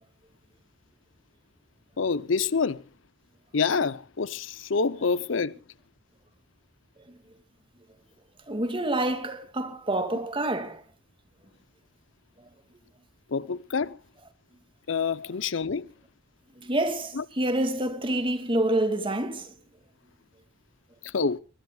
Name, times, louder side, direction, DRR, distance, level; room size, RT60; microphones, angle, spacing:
voice 1, 2.0-2.8 3.5-5.5 13.3-14.0 14.9-15.9 17.1-17.2 21.0-21.4, left 5 dB, 75° left, 0.7 m, -27 dB
voice 2, 8.5-10.8 16.6-19.5, right 1 dB, 25° right, 2.2 m, -27 dB
23.5 x 20.5 x 2.3 m
head